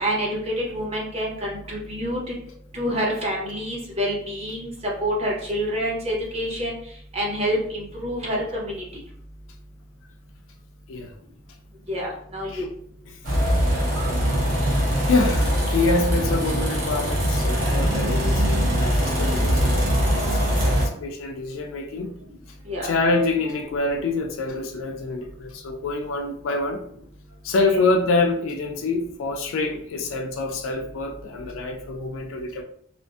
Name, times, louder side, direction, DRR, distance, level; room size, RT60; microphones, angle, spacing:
voice 1, 0.0-2.3 2.7-4.7 5.0-6.8 7.1-8.8 11.9-12.7 22.7-22.9, equal, 30° right, -3 dB, 0.7 m, -27 dB
sound 1, 13.2-20.9, equal, 85° right, 0.9 m, -22 dB
voice 2, 15.1-22.1 22.8-26.8 27.4-32.6, left 3 dB, 90° left, 3 dB, 0.3 m, -26 dB
2.5 x 2.4 x 2.3 m, 0.64 s
head